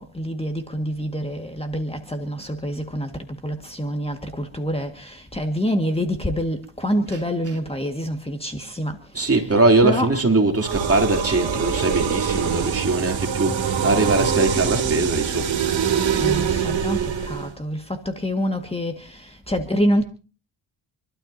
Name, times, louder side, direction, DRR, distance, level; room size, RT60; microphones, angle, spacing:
voice 1, 0.0-9.4 9.8-10.1 16.2-20.0, equal, 10° left, 1.9 m, -26 dB
voice 2, 9.1-15.5, right 2 dB, 30° right, 3.4 m, -21 dB
sound 1, 10.6-17.5, right 7 dB, 70° right, 2.8 m, -24 dB
28.0 x 12.5 x 2.8 m
cardioid pair, 80°, 47 cm